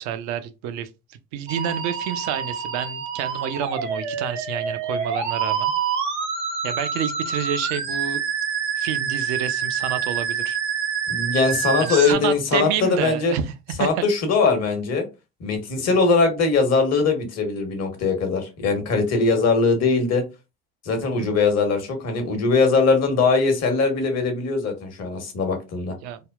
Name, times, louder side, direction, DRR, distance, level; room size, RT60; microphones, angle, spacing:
voice 1, 0.0-5.7 6.6-8.2 8.8-10.6 11.8-14.0 21.0-21.3 26.0-26.2, right 9 dB, 60° right, 0.5 m, -29 dB
Musical instrument, 1.5-12.1, right 6 dB, 80° right, 0.9 m, -27 dB
voice 2, 11.1-13.3 13.8-15.0 15.4-20.2 20.8-25.9, left 4 dB, 50° left, 1.1 m, -21 dB
3.4 x 2.2 x 2.3 m
figure-of-eight pair, 55°, 33 cm